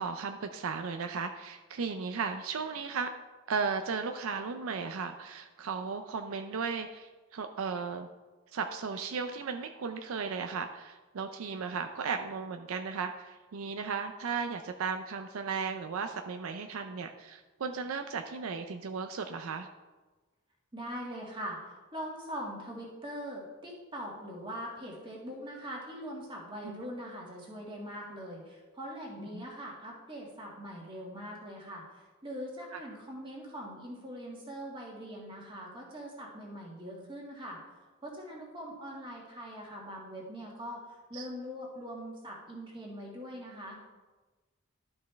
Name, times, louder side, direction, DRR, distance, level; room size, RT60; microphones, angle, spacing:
voice 1, 0.0-3.1 3.5-8.1 8.5-19.7 26.6-26.9 29.3-29.4 32.7-32.8 41.1-41.3, right 5 dB, 70° right, 6 dB, 0.5 m, -35 dB
voice 2, 20.7-21.6 21.9-37.6 38.0-43.8, equal, 25° right, -2 dB, 1.8 m, -42 dB
12.0 x 5.3 x 3.4 m, 1.2 s
head